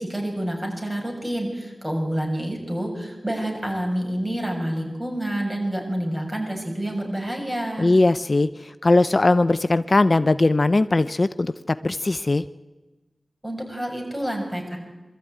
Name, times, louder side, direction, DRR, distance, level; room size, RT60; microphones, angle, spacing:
voice 1, 0.0-7.9 13.4-14.8, right 1 dB, 15° right, 1 dB, 7.1 m, -28 dB
voice 2, 7.8-12.4, left 2 dB, 50° left, 13 dB, 0.6 m, -20 dB
23.5 x 13.5 x 9.3 m, 1.2 s
cardioid pair, 40°, 0 cm